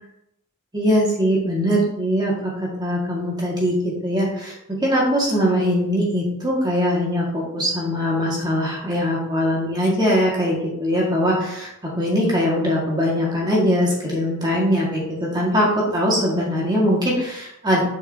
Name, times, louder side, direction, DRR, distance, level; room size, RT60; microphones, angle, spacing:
voice 1, 0.7-4.5 4.8-17.8, equal, 20° right, -4 dB, 2.0 m, -21 dB
7.5 x 5.8 x 2.9 m, 0.79 s
head